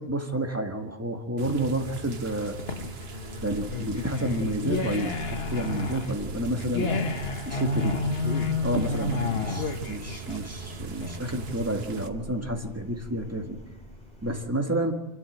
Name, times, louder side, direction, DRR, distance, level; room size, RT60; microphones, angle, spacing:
voice 1, 0.1-2.5 3.4-6.9 7.4-8.0 8.6-13.6 14.2-14.9, right 1 dB, 15° right, 3 dB, 1.7 m, -30 dB
sound 1, 1.4-12.1, right 4 dB, 75° right, 1.3 m, -39 dB
sound 2, 2.4-11.5, left 3 dB, 75° left, 1.5 m, -30 dB
sound 3, 3.4-14.4, left 1 dB, 5° left, 4.8 m, -45 dB
27.0 x 12.5 x 7.8 m, 1.1 s
omnidirectional pair, 1.0 m